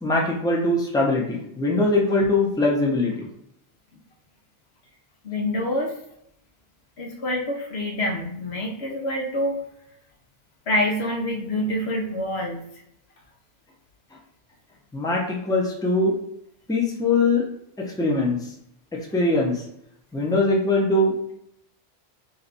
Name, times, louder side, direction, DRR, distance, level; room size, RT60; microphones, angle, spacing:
voice 1, 0.0-3.3 14.9-16.1 16.7-17.5 17.8-18.5 19.1-19.6 20.1-21.3, left 2 dB, 5° left, -2 dB, 0.7 m, -22 dB
voice 2, 5.2-5.9 7.0-9.6 10.7-12.6, left 1 dB, 75° left, 0 dB, 1.1 m, -26 dB
3.2 x 2.9 x 4.0 m, 0.74 s
omnidirectional pair, 1.1 m